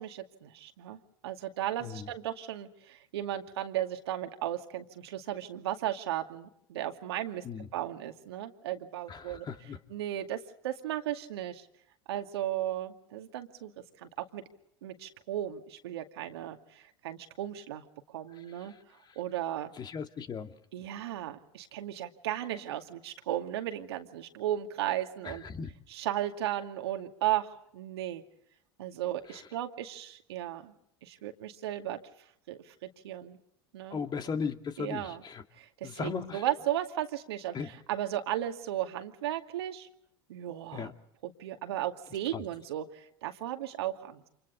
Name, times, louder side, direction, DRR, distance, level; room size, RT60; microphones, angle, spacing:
voice 1, 0.0-9.5 9.9-11.7 12.1-13.7 14.0-14.4 14.8-17.8 18.1-18.7 19.2-19.7 20.7-25.4 25.9-28.2 28.8-30.7 31.0-32.0 32.5-33.4 33.7-34.0 34.8-35.2 35.6-39.9 40.3-40.9 41.2-44.2, right 12 dB, 75° right, 6 dB, 2.3 m, -35 dB
voice 2, 9.1-9.8 19.8-20.5 25.3-25.7 29.3-29.4 33.9-35.4 35.8-36.4 37.5-37.7 40.7-40.9 42.3-42.4, left 6 dB, 30° left, 7 dB, 2.3 m, -37 dB
29.5 x 27.5 x 4.0 m, 0.71 s
hypercardioid pair, 85°, 14 cm